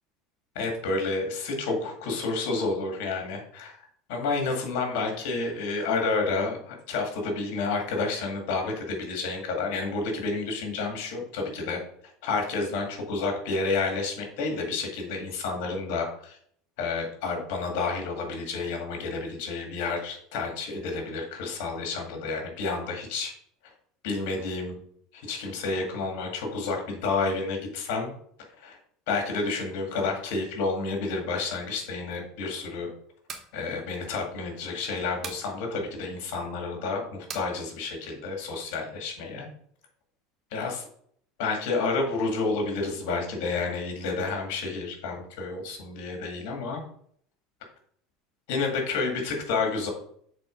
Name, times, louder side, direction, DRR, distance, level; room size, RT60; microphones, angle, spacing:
voice 1, 0.6-3.7 4.1-11.8 12.2-16.4 16.8-23.3 24.0-24.8 25.1-28.1 28.6-28.8 29.1-32.9 33.5-39.5 40.5-40.8 41.4-46.8 48.5-49.9, left 3 dB, 70° left, 2 dB, 2.1 m, -30 dB
sound 1, 33.1-33.5 35.2-35.5 37.3-37.5, right 5 dB, 30° right, 1.1 m, -38 dB
6.7 x 3.9 x 5.2 m, 0.65 s
supercardioid pair, 150°, 0 cm